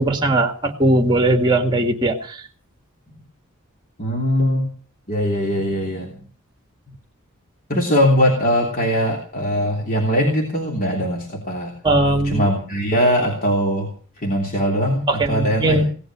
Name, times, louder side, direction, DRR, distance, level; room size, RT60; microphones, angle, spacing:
voice 1, 0.0-2.4 11.8-12.5 15.1-15.9, right 2 dB, 20° right, 6 dB, 2.1 m, -19 dB
voice 2, 4.0-4.7 5.1-6.3 7.7-11.7 12.2-15.9, equal, 40° left, 0 dB, 3.3 m, -21 dB
18.0 x 12.0 x 6.3 m, 0.42 s
head